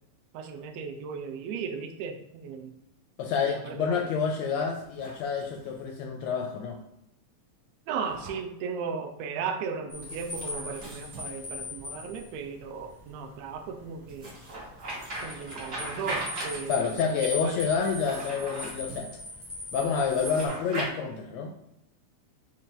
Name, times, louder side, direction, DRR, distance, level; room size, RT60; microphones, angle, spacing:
voice 1, 0.3-2.8 3.4-4.1 7.9-14.3 15.2-17.6, right 5 dB, 80° right, 6 dB, 1.6 m, -36 dB
voice 2, 3.2-6.8 16.7-19.1 19.7-21.7, left 6 dB, 80° left, 2 dB, 1.6 m, -28 dB
sound 1, 4.8-5.8 8.0-8.4 10.0-12.0 14.1-17.0 17.8-19.0 20.0-20.9, right 1 dB, 45° right, 1.0 m, -39 dB
sound 2, 9.9-20.5, left 2 dB, 15° left, 0.7 m, -41 dB
5.4 x 2.5 x 3.8 m, 0.82 s
omnidirectional pair, 3.5 m